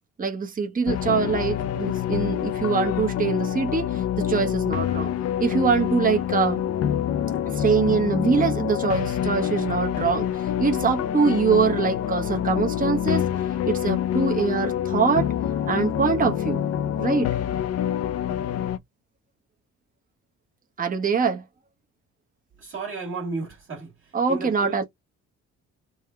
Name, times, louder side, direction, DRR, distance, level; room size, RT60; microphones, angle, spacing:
voice 1, 0.2-5.1 5.4-6.6 7.5-13.3 13.7-15.3 15.7-16.6 17.0-17.3 20.8-21.4 24.1-24.8, right 5 dB, 30° right, 0.9 m, -24 dB
sound 1, 0.9-18.8, left 10 dB, 55° left, 0.5 m, -26 dB
voice 2, 22.6-24.8, right 3 dB, 45° right, 1.8 m, -34 dB
3.5 x 2.2 x 4.4 m
cardioid pair, 90°, 30 cm